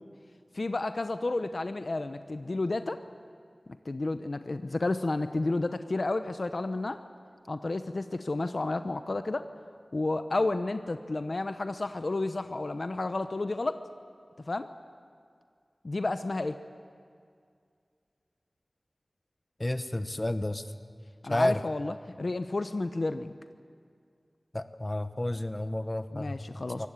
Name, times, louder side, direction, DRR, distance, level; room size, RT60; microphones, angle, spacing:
voice 1, 0.5-3.0 3.7-7.0 7.5-9.5 9.9-13.8 14.5-14.7 15.8-16.6 21.2-23.3 26.1-26.9, left 2 dB, 60° left, 9 dB, 0.8 m, -31 dB
voice 2, 19.6-20.6 21.3-21.6 24.5-26.4 26.8-26.9, left 1 dB, 25° left, 10 dB, 1.0 m, -30 dB
23.5 x 18.0 x 8.4 m, 2.2 s
wide cardioid pair, 70°, 0 cm